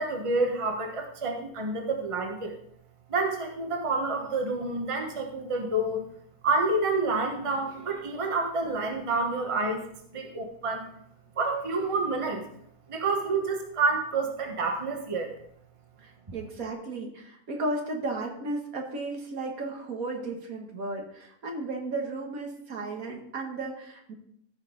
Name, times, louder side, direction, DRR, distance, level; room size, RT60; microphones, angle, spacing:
voice 1, 0.0-2.6 3.1-6.0 6.4-9.8 10.1-10.9 11.4-12.4 12.9-15.3, right 3 dB, 20° right, 2 dB, 1.2 m, -28 dB
voice 2, 16.0-24.2, right 2 dB, 65° right, 2 dB, 1.9 m, -34 dB
15.0 x 5.4 x 3.9 m, 0.70 s
omnidirectional pair, 1.7 m